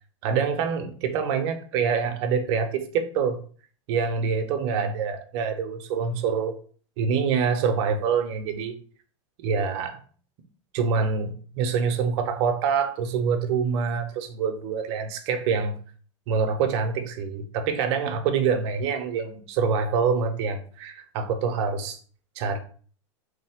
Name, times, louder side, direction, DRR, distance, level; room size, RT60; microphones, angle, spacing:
voice 1, 0.2-3.4 3.9-6.5 7.0-8.8 9.4-10.0 10.7-15.8 16.3-22.0 22.4-22.6, right 6 dB, 55° right, 0.7 m, -25 dB
3.2 x 2.1 x 3.5 m
hypercardioid pair, 105°, 17 cm